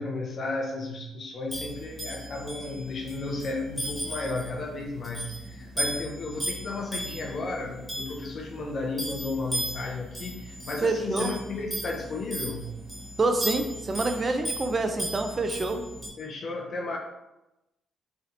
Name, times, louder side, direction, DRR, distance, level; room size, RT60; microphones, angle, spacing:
voice 1, 0.0-12.7 16.2-17.0, left 3 dB, 55° left, 0 dB, 0.4 m, -34 dB
sound 1, 1.5-16.1, right 1 dB, 15° right, 1.3 m, -36 dB
voice 2, 10.8-11.3 13.2-15.8, right 3 dB, 30° right, 6 dB, 0.4 m, -27 dB
3.3 x 2.7 x 2.6 m, 0.95 s
cardioid pair, 90°, 0 cm